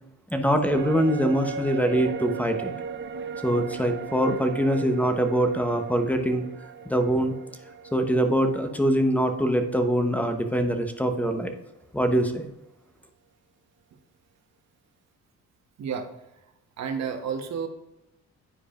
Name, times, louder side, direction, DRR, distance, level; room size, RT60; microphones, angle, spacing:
voice 1, 0.3-2.7 3.4-6.4 6.9-7.3 7.9-11.5 11.9-12.5, right 1 dB, 5° left, 6 dB, 1.0 m, -23 dB
sound 1, 0.7-10.2 10.5-10.6, right 5 dB, 40° right, 0.6 m, -37 dB
voice 2, 15.8-16.5 16.8-17.7, right 6 dB, 60° right, 5 dB, 1.2 m, -31 dB
9.8 x 4.7 x 2.5 m, 0.90 s
cardioid pair, 90°, 30 cm